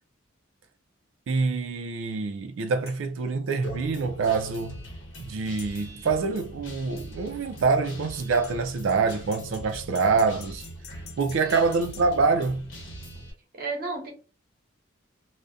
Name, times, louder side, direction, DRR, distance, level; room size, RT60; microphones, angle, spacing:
voice 1, 1.3-4.9 5.2-10.6 11.2-12.7, right 4 dB, 65° right, 0.3 m, -25 dB
sound 1, 2.9-3.0 5.6-5.7 8.4-12.1, left 7 dB, 50° left, 0.5 m, -47 dB
Guitar, 3.6-13.3, right 1 dB, 70° left, 0.9 m, -42 dB
voice 2, 11.4-11.9 13.5-14.1, right 3 dB, 45° right, 0.7 m, -34 dB
2.5 x 2.1 x 2.3 m
head